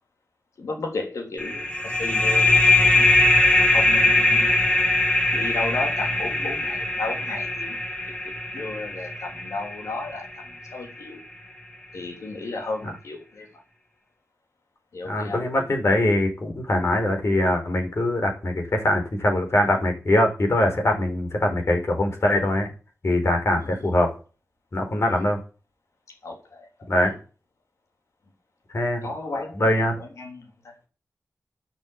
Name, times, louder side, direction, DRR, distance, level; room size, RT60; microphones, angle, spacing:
voice 1, 0.6-3.1 3.7-4.5 5.3-7.8 8.5-11.2 11.9-13.5 14.9-15.4 23.6-23.7 25.1-25.2 26.2-26.7 27.0-27.1 29.0-30.7, left 3 dB, 85° left, 3.3 m, -34 dB
sound 1, 1.4-10.7, left 2 dB, 25° left, 3.5 m, -21 dB
voice 2, 15.0-22.7 23.0-24.1 24.7-25.4 26.9-27.1 28.7-29.1 29.5-30.0, left 1 dB, 65° left, 5.2 m, -22 dB
10.5 x 6.8 x 8.6 m
cardioid pair, 45°, 5 cm